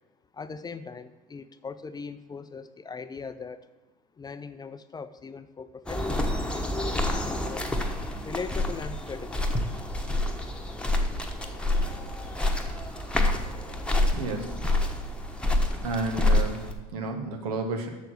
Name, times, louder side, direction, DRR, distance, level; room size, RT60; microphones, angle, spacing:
voice 1, 0.3-3.7 4.2-7.7 8.2-9.5 13.7-14.0 14.9-15.0, left 5 dB, 20° left, 12 dB, 0.5 m, -40 dB
sound 1, 5.9-16.7, left 1 dB, 5° left, 1.1 m, -27 dB
voice 2, 14.1-14.6 15.8-17.9, right 3 dB, 80° right, 5 dB, 1.4 m, -32 dB
6.7 x 6.7 x 6.3 m, 1.2 s
hypercardioid pair, 80°, 20 cm